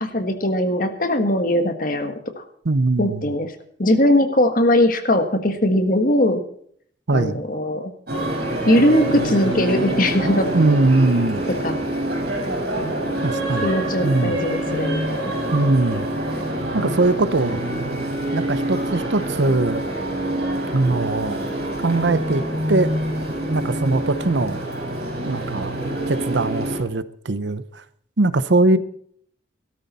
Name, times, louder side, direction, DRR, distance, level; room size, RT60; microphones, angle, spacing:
voice 1, 0.0-2.4 3.0-3.5 3.8-6.4 7.1-7.9 8.6-10.5 11.6-11.8 12.8-13.0 13.6-15.4 16.8-17.2, left 1 dB, 45° left, 7 dB, 1.6 m, -20 dB
voice 2, 2.6-3.3 7.1-7.4 10.5-11.4 13.2-13.7 14.0-14.4 15.5-16.1 16.7-17.6 18.3-19.8 20.7-21.4 21.8-22.4 22.7-22.9 23.5-24.6 25.2-25.8 26.1-27.8 28.2-28.8, right 2 dB, 70° right, 14 dB, 0.8 m, -20 dB
sound 1, 8.1-26.8, right 1 dB, 55° right, 7.0 m, -26 dB
17.0 x 13.0 x 4.2 m, 0.62 s
head